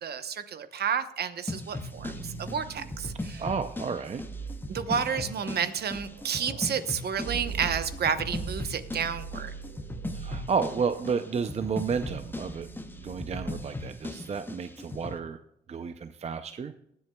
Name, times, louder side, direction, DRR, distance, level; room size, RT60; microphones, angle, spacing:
voice 1, 0.0-3.4 4.7-9.5, right 7 dB, 55° right, 11 dB, 0.9 m, -31 dB
sound 1, 1.5-15.2, left 2 dB, 10° left, 0.8 m, -38 dB
sound 2, 1.8-14.5, right 4 dB, 75° right, 1.9 m, -42 dB
voice 2, 3.4-4.2 4.9-5.0 10.1-12.7 13.0-15.4 15.7-16.7, right 5 dB, 35° right, 10 dB, 0.5 m, -31 dB
21.5 x 7.5 x 2.3 m, 0.75 s
cardioid pair, 90°, 20 cm